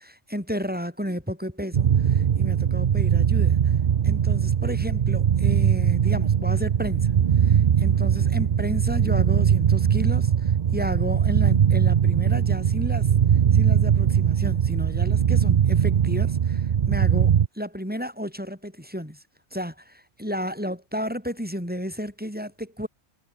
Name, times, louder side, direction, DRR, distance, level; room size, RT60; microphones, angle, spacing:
voice 1, 0.0-3.6 4.0-7.1 7.4-13.1 13.5-19.2 19.5-22.9, equal, 5° right, 7.0 m, -32 dB
sound 1, 1.7-17.5, right 8 dB, 50° right, 0.5 m, -21 dB
omnidirectional pair, 1.5 m